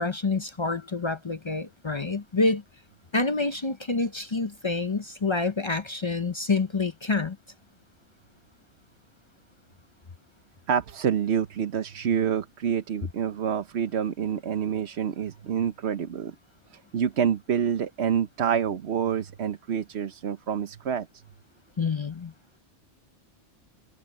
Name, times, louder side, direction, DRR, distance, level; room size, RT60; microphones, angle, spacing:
voice 1, 0.0-2.6 3.1-7.4 21.8-22.3, left 3 dB, 35° left, 0.5 m, -27 dB
voice 2, 10.7-16.3 16.7-21.1, right 8 dB, 65° right, 1.1 m, -27 dB
omnidirectional pair, 1.3 m